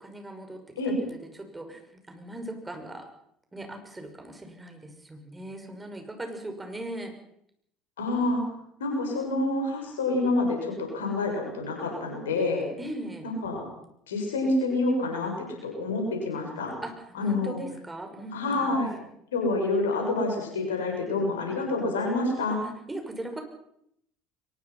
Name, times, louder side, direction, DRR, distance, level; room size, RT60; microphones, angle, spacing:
voice 1, 0.0-1.8 2.1-3.1 3.5-7.1 12.8-13.3 16.8-18.8 22.6-23.4, right 1 dB, 15° right, 5 dB, 6.3 m, -39 dB
voice 2, 8.0-8.4 8.8-12.6 13.2-13.7 14.1-16.8 17.1-17.6 18.3-18.9 19.3-22.6, left 2 dB, 80° left, 2 dB, 6.9 m, -27 dB
23.0 x 21.0 x 5.9 m, 0.73 s
hypercardioid pair, 65°, 0 cm